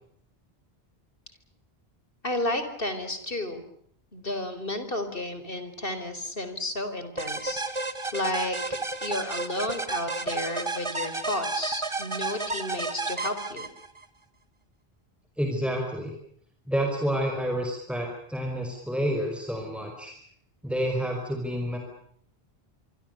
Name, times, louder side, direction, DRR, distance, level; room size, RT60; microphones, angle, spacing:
voice 1, 2.2-3.6 4.1-7.6 8.1-13.7, left 1 dB, 60° left, 10 dB, 4.6 m, -32 dB
sound 1, 7.2-14.0, right 3 dB, 30° right, 1.8 m, -32 dB
voice 2, 15.4-16.1 16.7-20.2 20.6-21.8, equal, ahead, 2 dB, 5.4 m, -29 dB
27.5 x 24.0 x 6.8 m, 0.66 s
omnidirectional pair, 1.0 m